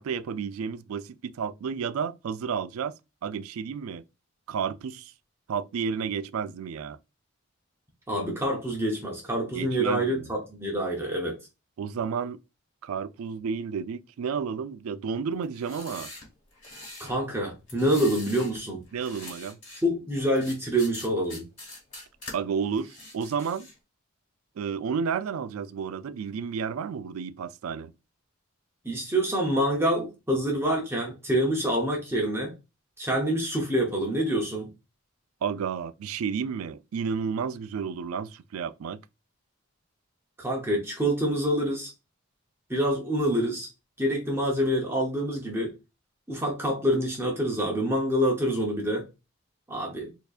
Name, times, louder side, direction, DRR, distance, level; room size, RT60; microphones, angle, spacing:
voice 1, 0.0-4.0 4.5-5.1 5.5-7.0 9.5-10.3 11.8-12.4 12.8-16.1 18.9-19.6 22.3-23.7 24.6-27.9 35.4-39.0, right 6 dB, 90° right, 0.3 m, -31 dB
voice 2, 8.1-11.4 17.0-18.8 19.8-21.4 28.8-32.5 33.0-34.7 40.4-41.9 42.7-43.7 44.0-45.7 46.3-49.1 49.7-50.1, right 1 dB, 10° right, 0.8 m, -26 dB
sound 1, 15.4-17.2 17.7-18.6 18.9-19.8 20.3-22.3 22.7-23.8, left 2 dB, 35° left, 2.1 m, -44 dB
4.3 x 2.7 x 2.4 m
head